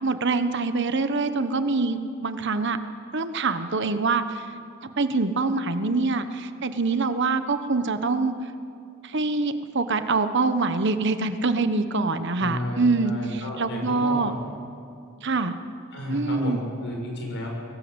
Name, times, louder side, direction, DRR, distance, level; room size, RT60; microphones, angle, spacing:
voice 1, 0.0-2.8 3.1-4.5 5.0-8.3 9.0-14.3 15.2-15.5 16.1-16.6, right 3 dB, 55° right, 10 dB, 1.1 m, -25 dB
voice 2, 12.4-14.4 15.9-17.5, left 1 dB, 60° left, 0 dB, 6.2 m, -32 dB
22.0 x 18.5 x 8.0 m, 2.3 s
head